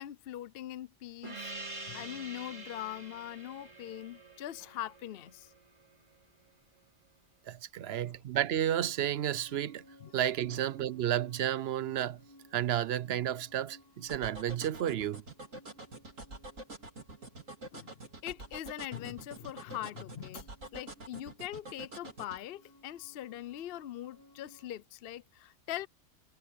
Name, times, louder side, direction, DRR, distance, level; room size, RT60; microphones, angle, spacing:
voice 1, 0.0-1.5 1.9-5.5 7.8-8.2 10.0-10.1 10.5-10.6 17.7-17.9 18.2-25.9, left 13 dB, 60° left, 0.7 m, -42 dB
Gong, 1.2-6.2, right 2 dB, 30° right, 3.4 m, -46 dB
voice 2, 7.5-9.8 10.1-12.2 12.5-15.2, right 11 dB, 65° right, 0.7 m, -32 dB
sound 1, 8.6-24.7, left 1 dB, 20° left, 3.4 m, -61 dB
sound 2, 14.1-22.4, right 2 dB, 85° right, 4.1 m, -46 dB
omnidirectional pair, 1.3 m